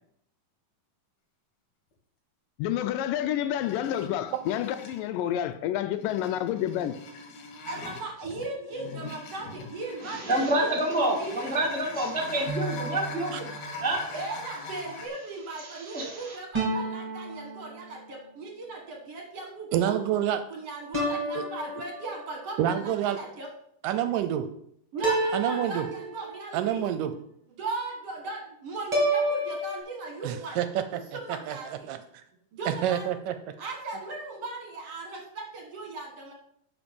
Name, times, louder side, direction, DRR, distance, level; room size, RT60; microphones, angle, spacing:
voice 1, 2.6-6.9, left 11 dB, 80° left, 2.1 m, -29 dB
sound 1, 3.5-5.1 5.8-15.1, left 3 dB, 65° left, 2.8 m, -42 dB
voice 2, 7.7-11.5 14.1-20.2 20.5-23.5 24.9-26.8 27.5-30.6 31.1-31.9 32.5-33.1 33.6-36.3, right 3 dB, 55° right, 2.2 m, -37 dB
voice 3, 10.0-14.1 15.6-16.4, right 1 dB, 5° left, 0.8 m, -28 dB
sound 2, 12.5-14.1 16.5-18.2 20.9-22.4 25.0-26.6 28.9-29.8, right 1 dB, 10° right, 2.4 m, -31 dB
voice 4, 19.7-20.4 21.4-21.5 22.6-23.2 23.8-24.5 25.3-25.9 26.5-27.1 30.2-31.0 31.5-32.2 32.7-33.3, right 10 dB, 80° right, 2.1 m, -28 dB
11.0 x 5.1 x 5.3 m
omnidirectional pair, 4.0 m